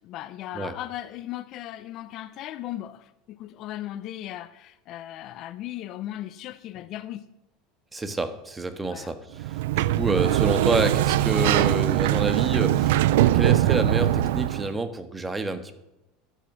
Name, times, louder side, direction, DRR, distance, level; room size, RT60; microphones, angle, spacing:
voice 1, 0.0-7.3 8.9-9.1, left 13 dB, 55° left, 0.7 m, -37 dB
voice 2, 7.9-15.7, right 2 dB, 15° right, 1.6 m, -28 dB
Sliding door, 9.4-14.7, right 14 dB, 80° right, 0.5 m, -22 dB
12.0 x 9.0 x 6.2 m
supercardioid pair, 110°, 0 cm